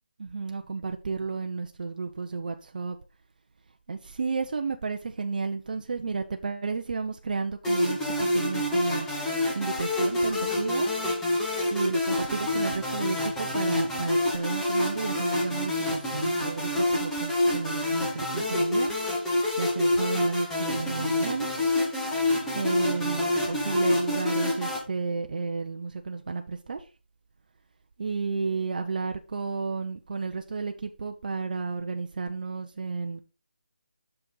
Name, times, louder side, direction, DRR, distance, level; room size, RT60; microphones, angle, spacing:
voice 1, 0.2-3.0 3.9-9.1 9.5-10.9 11.7-19.0 19.6-21.5 22.5-26.9 28.0-33.2, right 4 dB, 50° right, 0.7 m, -32 dB
sound 1, 7.6-24.8, left 1 dB, 5° left, 1.8 m, -27 dB
7.6 x 6.1 x 3.9 m
figure-of-eight pair, 165°, 6 cm